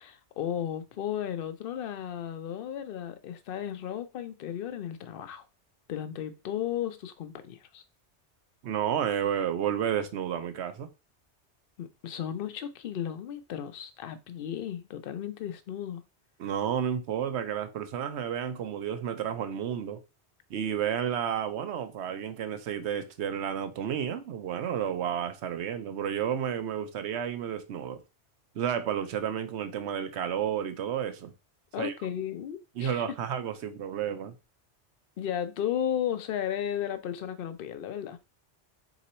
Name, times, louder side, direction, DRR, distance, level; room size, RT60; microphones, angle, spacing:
voice 1, 0.0-5.5 5.9-7.8 11.8-16.0 31.7-33.0 35.2-38.2, left 10 dB, 60° left, 0.7 m, -34 dB
voice 2, 8.6-10.9 16.4-20.0 20.5-28.0 28.5-31.3 31.8-31.9 32.8-34.3, right 9 dB, 75° right, 0.9 m, -31 dB
3.8 x 3.0 x 4.2 m
omnidirectional pair, 1.2 m